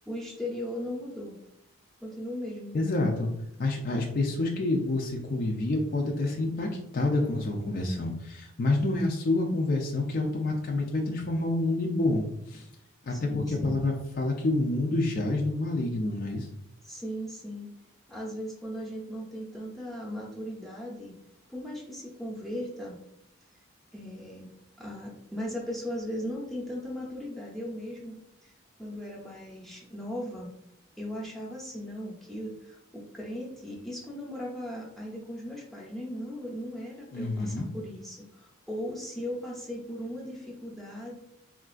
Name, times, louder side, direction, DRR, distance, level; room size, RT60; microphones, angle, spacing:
voice 1, 0.1-1.4 2.0-2.8 13.1-13.8 16.8-17.7 18.1-21.1 21.5-23.0 23.9-24.5 24.8-28.5 28.8-30.5 31.0-41.1, equal, ahead, -4 dB, 0.6 m, -38 dB
voice 2, 2.7-3.3 3.6-12.6 13.0-16.5 37.1-37.7, left 2 dB, 45° left, 0 dB, 0.4 m, -28 dB
3.7 x 2.3 x 2.4 m, 0.79 s
head